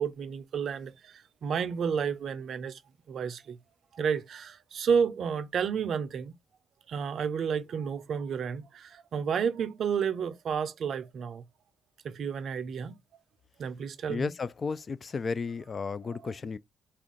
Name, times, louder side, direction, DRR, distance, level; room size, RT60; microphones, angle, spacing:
voice 1, 0.0-2.8 3.1-3.6 3.9-6.3 6.9-11.4 12.0-13.0 13.6-14.3 16.1-16.3, right 6 dB, 65° right, 0.5 m, -31 dB
voice 2, 14.1-16.6, left 5 dB, 45° left, 0.3 m, -33 dB
3.4 x 2.4 x 3.7 m
hypercardioid pair, 50°, 0 cm